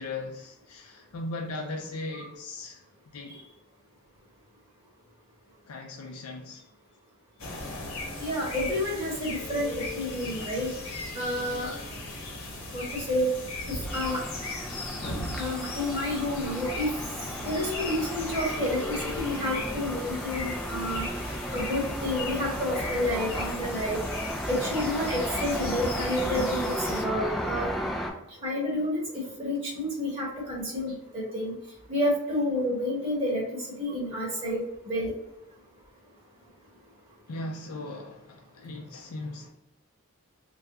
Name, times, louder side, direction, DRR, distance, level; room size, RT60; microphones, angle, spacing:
voice 1, 0.0-3.4 5.7-6.6 24.1-24.2 37.3-39.5, left 2 dB, 90° left, 1 dB, 0.5 m, -38 dB
sound 1, 7.4-27.0, left 2 dB, 70° left, 0.9 m, -37 dB
voice 2, 8.2-10.7 11.1-11.7 12.7-13.3 13.9-14.2 15.4-16.9 17.4-21.1 21.5-24.0 24.5-27.7 28.4-29.0 29.4-31.5 31.9-35.1, left 1 dB, 25° right, -5 dB, 1.0 m, -29 dB
sound 2, 13.9-28.1, equal, ahead, 0.3 m, -34 dB
3.3 x 2.4 x 2.8 m, 0.87 s
head